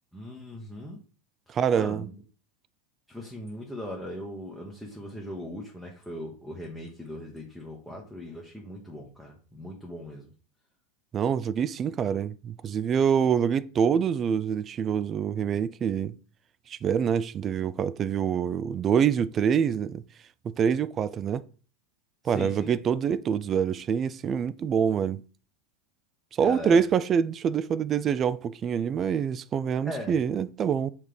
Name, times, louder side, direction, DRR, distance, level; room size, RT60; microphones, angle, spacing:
voice 1, 0.1-1.0 1.5-2.2 3.1-10.3 22.2-22.7 26.4-26.9 29.8-30.2, left 1 dB, ahead, 1.0 m, -39 dB
voice 2, 1.5-2.0 11.1-16.2 16.7-20.0 20.4-21.4 22.2-25.2 26.3-30.9, right 7 dB, 25° right, 0.3 m, -26 dB
5.8 x 3.2 x 5.1 m
supercardioid pair, 145°, 0 cm